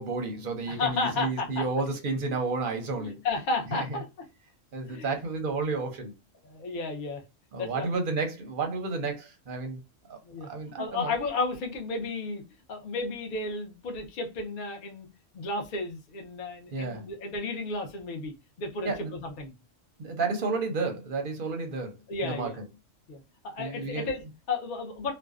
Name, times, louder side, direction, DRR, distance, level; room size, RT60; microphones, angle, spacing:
voice 1, 0.0-3.2 3.7-4.0 4.7-6.1 7.5-9.8 10.1-10.2 10.5-11.1 16.7-17.0 18.8-19.1 20.0-21.9 22.2-22.6 23.6-24.1, right 3 dB, 55° right, 0.7 m, -31 dB
voice 2, 0.7-1.6 3.0-4.0 4.8-5.2 6.4-7.2 7.6-7.9 10.2-10.5 10.8-12.4 12.7-15.1 15.3-18.9 19.2-19.5 22.1-22.6 23.1-25.1, left 3 dB, 50° left, 0.7 m, -33 dB
2.5 x 2.1 x 2.3 m
omnidirectional pair, 1.3 m